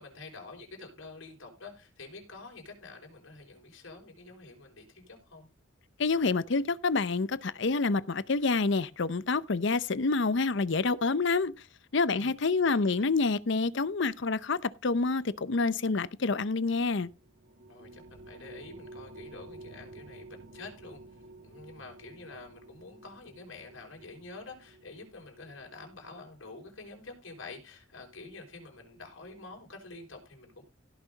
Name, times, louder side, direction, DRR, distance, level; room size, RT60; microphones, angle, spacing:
voice 1, 0.0-5.5 12.1-12.4 12.6-13.2 17.7-21.0 21.4-30.6, left 3 dB, 85° left, 5.2 m, -48 dB
voice 2, 6.0-11.5 11.9-17.1, left 3 dB, 60° left, 0.7 m, -27 dB
sound 1, 17.0-26.8, right 2 dB, 55° right, 1.6 m, -52 dB
16.5 x 6.1 x 4.0 m
head